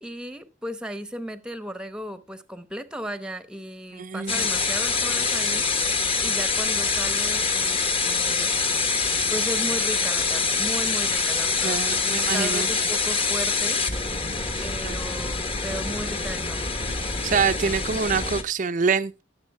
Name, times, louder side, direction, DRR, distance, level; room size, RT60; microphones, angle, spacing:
voice 1, 0.0-5.7 6.2-8.5 9.3-13.8 14.6-16.7, equal, 5° right, 0.8 m, -35 dB
voice 2, 4.0-4.5 11.6-12.7 14.5-15.0 17.0-19.2, right 5 dB, 40° right, 0.5 m, -26 dB
sound 1, 4.3-18.4, left 4 dB, 30° left, 1.2 m, -25 dB
17.5 x 7.1 x 3.4 m
head